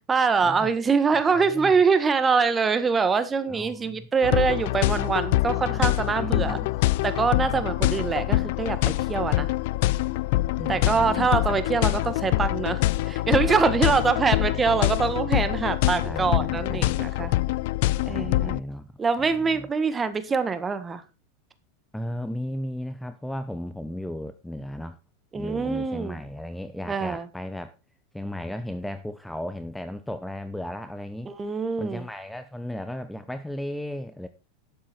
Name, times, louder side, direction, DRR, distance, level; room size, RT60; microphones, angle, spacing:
voice 1, 0.0-6.6 7.0-9.5 10.7-17.3 18.1-18.5 19.0-21.0 25.3-26.2 26.9-27.2 31.2-32.0, right 5 dB, 20° right, 1.5 m, -24 dB
voice 2, 1.2-1.7 3.5-4.1 5.5-6.8 7.5-7.7 10.6-11.5 16.0-17.0 18.1-18.9 19.2-19.7 21.9-25.0 25.3-27.7 28.1-31.3 31.8-34.3, left 1 dB, 5° left, 0.8 m, -35 dB
sound 1, 4.2-18.6, left 17 dB, 65° left, 0.4 m, -25 dB
11.5 x 7.4 x 4.4 m
hypercardioid pair, 110°, 0 cm